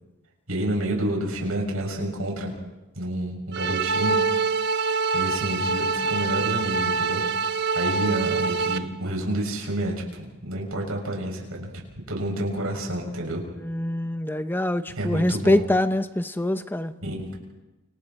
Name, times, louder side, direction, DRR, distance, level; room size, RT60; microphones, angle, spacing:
voice 1, 0.5-2.5 3.0-4.2 5.1-7.2 7.5-11.7 12.1-13.4 15.0-15.6 17.0-17.3, right 1 dB, 70° right, 0 dB, 6.8 m, -29 dB
sound 1, 3.5-8.8, right 4 dB, 50° right, 1.1 m, -25 dB
voice 2, 13.6-16.9, left 1 dB, 10° left, 11 dB, 0.7 m, -24 dB
29.5 x 26.0 x 4.4 m, 1.1 s
head